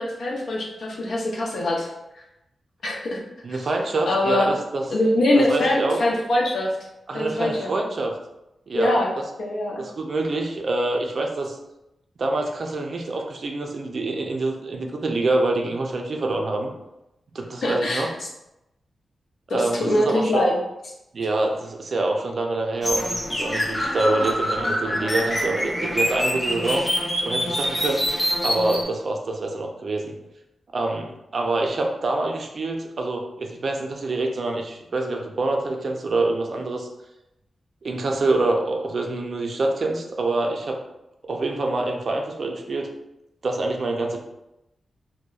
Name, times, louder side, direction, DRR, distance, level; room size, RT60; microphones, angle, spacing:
voice 1, 0.0-1.9 2.8-3.2 3.5-3.6 4.1-4.5 4.9-6.7 7.1-7.7 8.7-9.1 9.4-9.8 17.6-18.1 19.5-20.5, left 1 dB, 70° left, -2 dB, 0.6 m, -23 dB
voice 2, 3.4-4.9 5.4-6.0 7.1-8.2 8.7-8.9 9.8-11.6 12.2-16.7 17.3-18.1 19.5-20.4 21.1-26.8 27.2-28.1 28.4-30.1 30.7-36.9 37.8-40.8 41.3-42.9 43.4-44.2, right 2 dB, 55° right, 2 dB, 0.4 m, -26 dB
sound 1, 22.8-28.8, equal, 15° left, 0.5 m, -25 dB
2.8 x 2.1 x 2.3 m, 0.89 s
wide cardioid pair, 110°, 0 cm